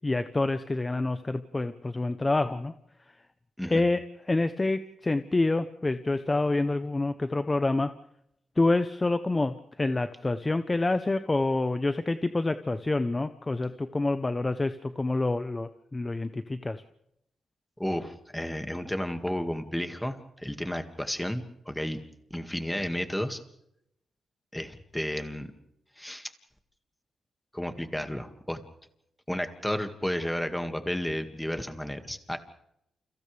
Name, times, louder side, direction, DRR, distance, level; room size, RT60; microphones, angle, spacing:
voice 1, 0.0-2.7 3.7-4.0 4.3-7.9 8.6-16.8, left 2 dB, 20° left, 10 dB, 0.8 m, -27 dB
voice 2, 17.8-22.0 22.3-23.4 24.5-25.5 26.0-26.3 27.5-28.6 29.3-32.4, equal, 5° left, 7 dB, 2.0 m, -32 dB
29.5 x 29.5 x 3.4 m, 0.79 s
cardioid pair, 110°, 0 cm